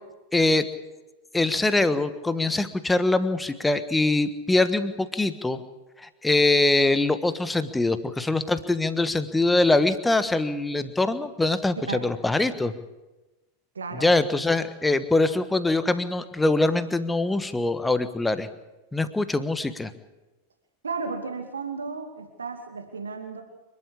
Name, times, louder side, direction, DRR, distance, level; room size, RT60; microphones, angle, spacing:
voice 1, 0.3-0.7 1.3-5.6 6.0-12.7 14.0-18.5 18.9-19.9, left 2 dB, 10° left, 12 dB, 1.3 m, -23 dB
voice 2, 13.7-14.1 20.8-23.4, right 4 dB, 75° right, 5 dB, 2.4 m, -33 dB
27.5 x 12.0 x 8.6 m, 1.1 s
figure-of-eight pair, 90°, 0 cm